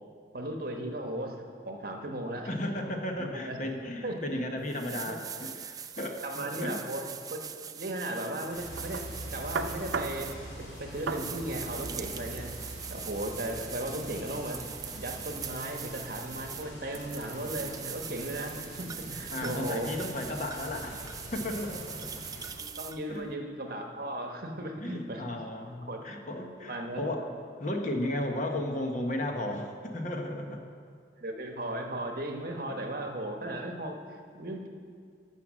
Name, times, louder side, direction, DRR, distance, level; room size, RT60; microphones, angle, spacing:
voice 1, 0.3-1.4 1.6-2.5 3.2-3.6 4.0-4.4 6.2-7.4 7.7-9.0 9.3-10.3 10.6-12.5 12.9-14.6 14.9-19.9 22.5-25.5 25.8-26.1 26.6-27.0 31.2-34.7, right 1 dB, 50° right, 3 dB, 1.1 m, -36 dB
voice 2, 2.5-6.8 19.3-22.3 23.1-23.3 24.8-27.3 27.6-30.6, left 1 dB, 40° left, 3 dB, 1.0 m, -34 dB
sound 1, 4.2-4.3 4.7-23.3, right 7 dB, 20° right, 0.3 m, -42 dB
sound 2, 8.5-22.5, left 1 dB, 85° left, 3.6 m, -47 dB
sound 3, 8.7-15.6, right 4 dB, 85° right, 0.6 m, -40 dB
12.0 x 5.9 x 7.3 m, 2.1 s
head